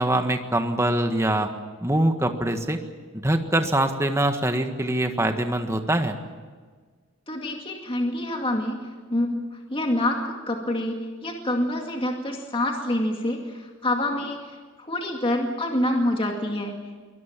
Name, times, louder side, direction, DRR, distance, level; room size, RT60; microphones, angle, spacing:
voice 1, 0.0-1.5 1.8-2.8 3.2-6.1, right 1 dB, 10° right, 6 dB, 1.6 m, -23 dB
voice 2, 7.3-9.3 9.7-14.5 14.8-16.7, left 1 dB, 25° left, 2 dB, 2.2 m, -26 dB
24.0 x 20.0 x 7.5 m, 1.5 s
head